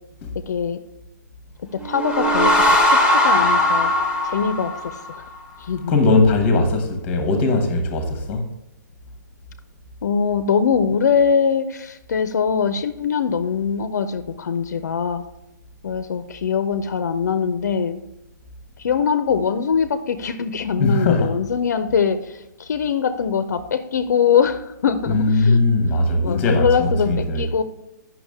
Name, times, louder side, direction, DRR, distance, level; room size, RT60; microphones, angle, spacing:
voice 1, 0.5-0.8 1.7-3.9 4.2-5.2 5.6-5.9 10.0-15.2 15.8-18.0 18.8-25.6 26.2-27.6, left 6 dB, 60° left, 0.5 m, -22 dB
sound 1, 1.8-5.3, left 1 dB, 10° right, 1.3 m, -18 dB
voice 2, 5.9-8.4 20.8-21.3 25.1-27.4, left 2 dB, 15° left, 0.9 m, -19 dB
8.8 x 5.9 x 3.5 m
hypercardioid pair, 170°, 10 cm